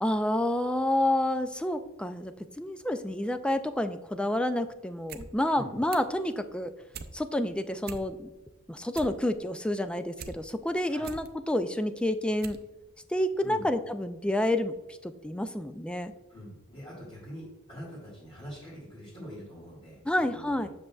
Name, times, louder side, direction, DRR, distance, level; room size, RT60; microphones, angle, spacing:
voice 1, 0.0-6.7 7.1-8.3 8.7-12.6 13.1-16.1 20.1-20.7, left 1 dB, 5° left, 9 dB, 0.3 m, -29 dB
fire flame burn, 4.9-5.3 5.6-6.2 6.6-7.1 7.5-7.6 7.8-8.4 8.7-10.3 10.7-11.3 11.8-11.9 12.4-12.7 12.9-13.0, right 6 dB, 50° right, 0.5 m, -43 dB
voice 2, 16.3-20.7, equal, 30° left, -9 dB, 2.0 m, -44 dB
7.6 x 6.4 x 2.3 m, 1.0 s
head